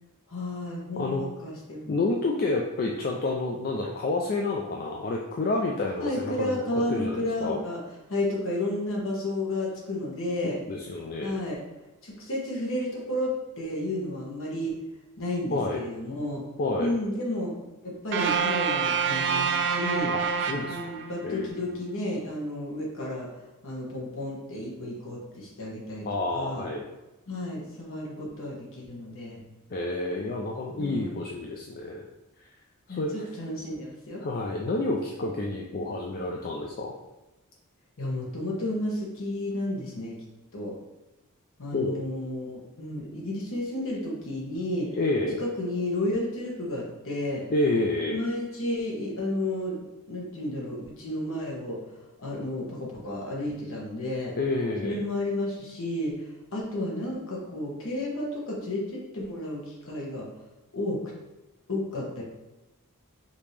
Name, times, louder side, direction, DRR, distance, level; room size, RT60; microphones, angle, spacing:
voice 1, 0.3-1.9 6.0-7.8 8.1-10.6 11.2-11.6 12.0-14.8 15.2-16.4 16.8-17.5 17.8-20.1 20.7-23.3 23.6-26.1 26.3-26.7 27.3-29.4 30.8-31.2 32.9-34.2 38.0-40.2 40.5-40.7 41.6-45.0 45.4-47.4 48.1-49.8 50.1-51.8 52.2-54.3 54.8-60.3 60.7-61.1 61.7-62.2, left 1 dB, 65° left, -3 dB, 1.3 m, -32 dB
voice 2, 1.9-6.6 6.9-7.6 10.7-11.3 15.5-15.8 16.6-16.9 20.1-20.2 20.5-20.8 21.2-21.8 26.0-26.8 29.7-32.1 32.4-32.5 32.9-33.3 34.2-36.9 41.7-42.0 45.0-45.4 47.5-48.2 54.4-55.1, left 2 dB, 40° left, 0 dB, 0.4 m, -29 dB
sound 1, 18.1-21.4, right 6 dB, 55° right, 0.5 m, -27 dB
5.1 x 2.8 x 3.3 m, 1.0 s
head